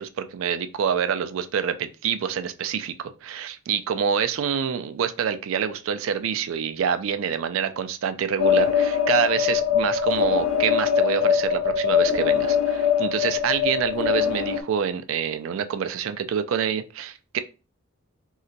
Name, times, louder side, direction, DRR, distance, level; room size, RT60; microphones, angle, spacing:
voice 1, 0.0-17.4, right 7 dB, 65° right, 10 dB, 0.3 m, -26 dB
sound 1, 8.4-14.6, left 8 dB, 65° left, 0.4 m, -22 dB
3.2 x 2.8 x 2.6 m, 0.34 s
head